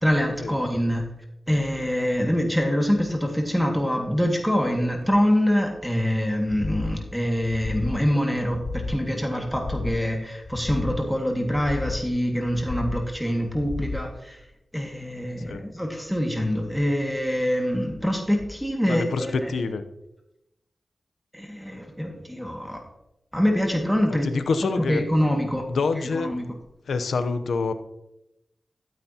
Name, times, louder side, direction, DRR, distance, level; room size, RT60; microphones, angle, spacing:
voice 1, 0.0-1.1 1.5-14.4 14.7-19.5 21.3-22.8 23.3-24.3 24.8-26.5, equal, ahead, 1 dB, 1.9 m, -25 dB
sound 1, 6.5-7.0 7.4-8.0 8.4-9.0 9.4-10.0 10.4-11.0 11.4-12.0 12.4-13.0 13.4-14.0, left 3 dB, 55° left, 0.8 m, -33 dB
voice 2, 18.9-19.8 24.2-25.0 25.7-26.3 26.9-27.7, left 4 dB, 85° left, 10 dB, 0.7 m, -26 dB
12.0 x 9.2 x 2.9 m, 0.87 s
cardioid pair, 45°, 0 cm